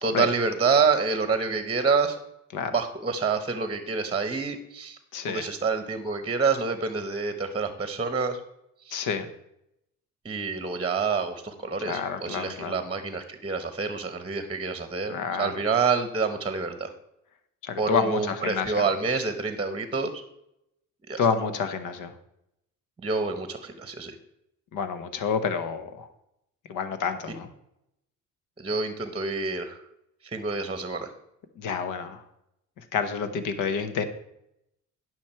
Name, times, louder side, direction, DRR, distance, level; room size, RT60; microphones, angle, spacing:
voice 1, 0.0-2.2 2.7-5.0 5.3-8.4 8.8-9.1 10.2-16.9 17.8-20.1 21.1-21.2 23.0-24.1 28.6-29.8 30.2-31.1, right 4 dB, 20° right, 9 dB, 1.1 m, -27 dB
voice 2, 5.1-5.5 8.9-9.3 11.9-12.8 15.1-15.5 17.6-18.8 21.2-22.1 24.7-26.1 26.7-27.5 31.6-32.2 32.8-34.0, left 6 dB, 90° left, 10 dB, 1.0 m, -29 dB
10.5 x 6.2 x 4.4 m, 0.81 s
cardioid pair, 90°, 30 cm